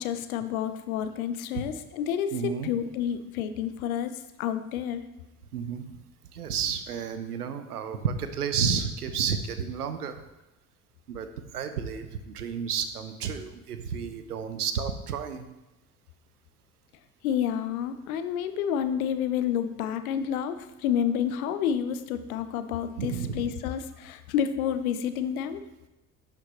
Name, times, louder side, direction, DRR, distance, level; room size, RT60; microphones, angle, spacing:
voice 1, 0.0-4.1 4.4-5.0 17.2-20.6 20.8-25.6, left 9 dB, 70° left, 11 dB, 0.7 m, -29 dB
voice 2, 2.3-2.7 5.5-6.0 6.3-10.2 11.1-11.3 11.5-15.5 23.0-23.6, right 7 dB, 85° right, 9 dB, 0.7 m, -31 dB
11.5 x 5.1 x 3.1 m, 1.0 s
figure-of-eight pair, 55°, 45 cm